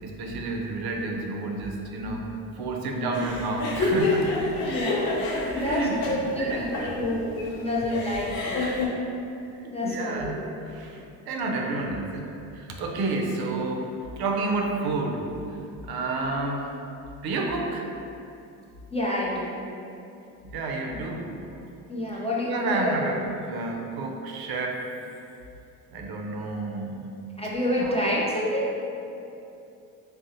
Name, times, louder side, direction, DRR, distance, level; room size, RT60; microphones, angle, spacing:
voice 1, 0.0-2.3 2.5-4.3 5.4-7.0 9.4-10.4 10.6-13.9 14.2-15.6 15.8-16.6 17.2-17.9 20.4-21.4 22.1-25.1 25.9-27.1 27.7-28.0, right 3 dB, 55° right, 1 dB, 0.5 m, -30 dB
sound 1, 3.1-8.9, left 2 dB, 50° left, 0.6 m, -28 dB
voice 2, 4.6-5.3 5.5-8.8 9.6-10.4 16.2-16.3 18.9-19.6 21.9-22.9 27.4-28.7, left 1 dB, 15° left, -6 dB, 0.4 m, -28 dB
3.6 x 2.1 x 2.7 m, 2.7 s
hypercardioid pair, 50°, 47 cm